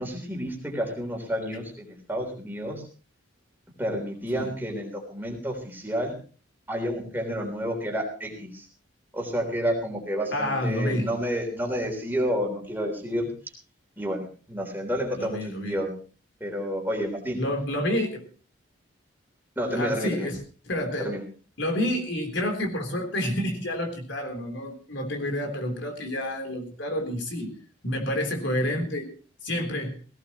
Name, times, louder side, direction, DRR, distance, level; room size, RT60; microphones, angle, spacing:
voice 1, 0.0-2.9 3.8-6.1 6.7-8.7 9.1-13.3 14.0-15.9 16.4-17.4 19.6-20.3 21.0-21.2, equal, 10° right, 1 dB, 3.6 m, -30 dB
voice 2, 10.3-11.1 15.2-15.8 17.4-18.2 19.7-20.4 20.7-21.2 21.6-27.6 27.8-29.1 29.4-30.0, left 1 dB, 60° left, 4 dB, 3.6 m, -29 dB
17.5 x 17.5 x 3.1 m, 0.37 s
head